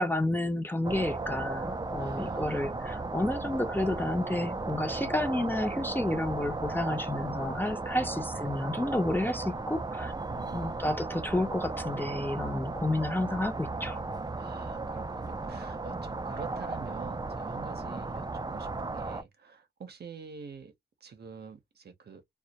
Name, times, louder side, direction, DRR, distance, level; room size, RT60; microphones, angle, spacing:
voice 1, 0.0-10.1 10.5-14.0, left 1 dB, 10° left, 0.7 m, -30 dB
sound 1, 0.8-19.2, right 3 dB, 25° right, 0.5 m, -35 dB
voice 2, 2.0-2.7 5.0-5.2 7.9-8.3 10.3-11.2 14.3-20.7 21.0-22.2, right 6 dB, 65° right, 0.7 m, -47 dB
2.2 x 2.1 x 2.8 m
cardioid pair, 40°, 18 cm